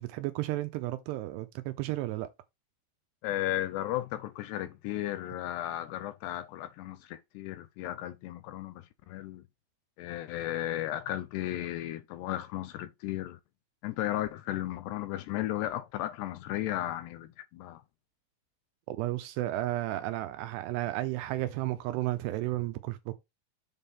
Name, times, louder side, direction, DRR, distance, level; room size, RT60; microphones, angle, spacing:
voice 1, 0.0-2.3 18.9-23.1, right 16 dB, 85° right, 2.6 m, -33 dB
voice 2, 3.2-9.4 10.0-13.4 13.8-17.8, left 14 dB, 80° left, 2.6 m, -35 dB
7.6 x 3.6 x 5.5 m
omnidirectional pair, 5.2 m